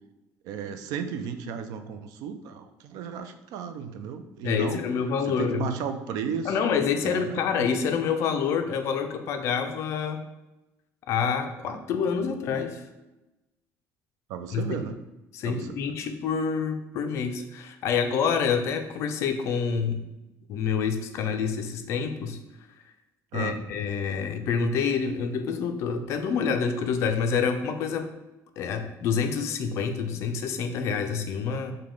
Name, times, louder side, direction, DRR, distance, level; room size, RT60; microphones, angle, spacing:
voice 1, 0.4-4.8 5.3-7.7 14.3-15.0 15.4-15.7 23.3-23.6, right 7 dB, 80° right, 8 dB, 0.4 m, -34 dB
voice 2, 4.4-5.7 6.4-10.2 11.1-12.8 14.5-14.8 15.3-20.0 20.5-22.4 23.3-28.1 28.6-31.7, left 6 dB, 50° left, 6 dB, 0.4 m, -27 dB
4.9 x 2.2 x 3.7 m, 1.0 s
cardioid pair, 175°, 6 cm